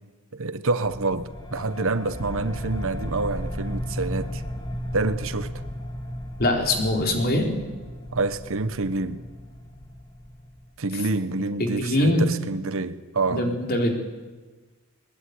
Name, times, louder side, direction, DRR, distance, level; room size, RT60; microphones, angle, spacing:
voice 1, 0.3-4.4 4.9-5.5 8.1-9.2 10.8-13.5, right 3 dB, 65° right, 1.1 m, -27 dB
sound 1, 0.8-11.0, equal, 20° left, 2.0 m, -35 dB
voice 2, 6.4-7.5 11.6-12.2 13.3-13.9, left 1 dB, 45° left, 4.2 m, -22 dB
21.0 x 21.0 x 9.6 m
head